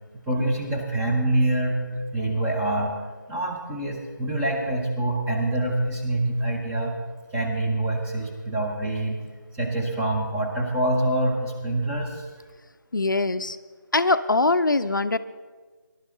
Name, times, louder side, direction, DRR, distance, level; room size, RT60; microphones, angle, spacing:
voice 1, 0.3-1.8 2.1-2.9 3.3-6.9 7.3-9.2 9.5-12.3, right 1 dB, 5° right, -1 dB, 0.8 m, -25 dB
voice 2, 12.9-13.6 13.9-15.2, left 3 dB, 70° left, 11 dB, 0.6 m, -22 dB
18.5 x 12.0 x 3.7 m, 1.4 s
figure-of-eight pair, 160°, 11 cm